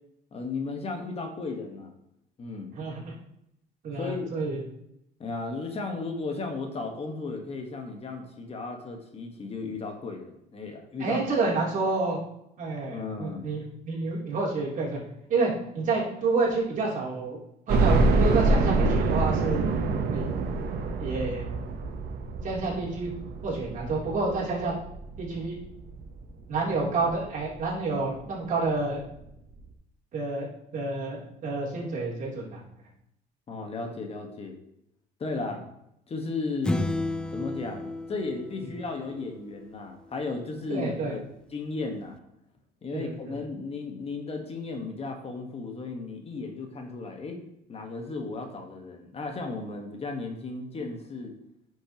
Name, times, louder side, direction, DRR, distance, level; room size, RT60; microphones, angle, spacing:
voice 1, 0.3-1.9 2.4-2.7 3.9-4.3 5.2-11.2 11.6-11.9 12.9-13.4 33.5-34.6 35.2-35.6 36.1-36.9 37.3-41.2 41.5-42.2 42.8-47.4 47.7-51.3, left 3 dB, 35° left, 3 dB, 1.4 m, -35 dB
voice 2, 2.7-3.1 3.8-4.6 11.0-12.2 12.6-15.0 15.3-17.4 17.7-19.6 20.1-20.3 21.0-21.5 22.4-23.1 23.4-24.7 25.2-25.6 26.5-29.0 30.1-30.5 30.7-32.6 40.7-41.1 42.9-43.3, right 3 dB, 50° right, -5 dB, 3.3 m, -29 dB
sound 1, 17.7-26.6 27.1-27.2 27.6-27.7 28.8-28.9 29.2-29.3, right 3 dB, 70° right, 1.1 m, -26 dB
sound 2, 36.6-39.3, left 2 dB, 5° left, 0.4 m, -32 dB
9.9 x 6.3 x 3.0 m, 0.78 s
cardioid pair, 110°, 17 cm